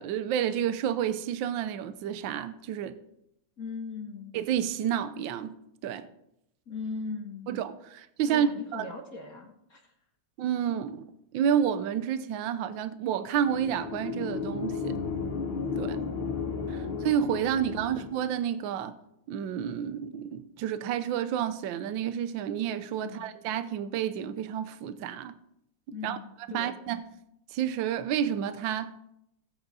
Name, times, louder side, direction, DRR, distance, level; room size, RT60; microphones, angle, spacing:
voice 1, 0.0-3.0 4.3-6.1 7.5-8.9 10.4-11.0 11.3-15.0 15.8-16.0 16.7-19.0 19.3-25.4 26.0-26.2 26.5-27.0 27.5-29.0, right 9 dB, 75° right, 1.4 m, -30 dB
voice 2, 3.6-4.4 6.7-7.5 8.3-9.9 15.8-16.9 17.8-18.0 23.0-23.2 25.9-26.7, left 4 dB, 50° left, 1.6 m, -40 dB
sound 1, 13.4-18.3, left 5 dB, 80° left, 2.1 m, -34 dB
17.0 x 7.9 x 4.1 m
omnidirectional pair, 2.2 m